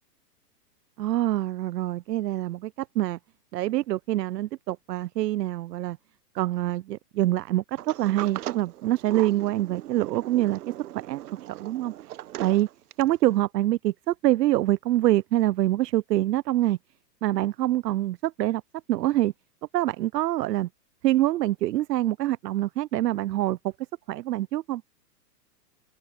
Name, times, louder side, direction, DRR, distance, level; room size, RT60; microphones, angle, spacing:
voice 1, 1.0-3.2 3.5-6.0 6.3-10.6 11.0-11.2 11.5-12.7 13.0-16.8 17.2-18.6 18.9-19.3 19.7-20.7 21.0-23.7 24.1-24.8, right 15 dB, 85° right, 0.6 m, -25 dB
Sliding door, 7.8-13.2, right 13 dB, 65° right, 1.1 m, -39 dB
open air
hypercardioid pair, 150°, 48 cm